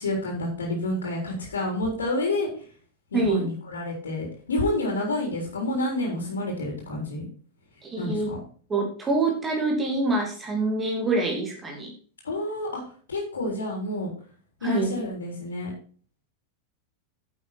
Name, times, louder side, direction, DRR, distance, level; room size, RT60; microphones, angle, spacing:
voice 1, 0.0-2.5 3.1-7.2 8.0-8.4 12.2-12.8 13.1-14.1 14.6-15.7, left 1 dB, 70° left, 0 dB, 3.9 m, -29 dB
voice 2, 3.1-3.5 7.8-8.3 8.7-11.9 14.6-14.9, right 2 dB, 20° right, 0 dB, 2.8 m, -25 dB
11.0 x 7.8 x 4.3 m, 0.44 s
figure-of-eight pair, 90°, 0 cm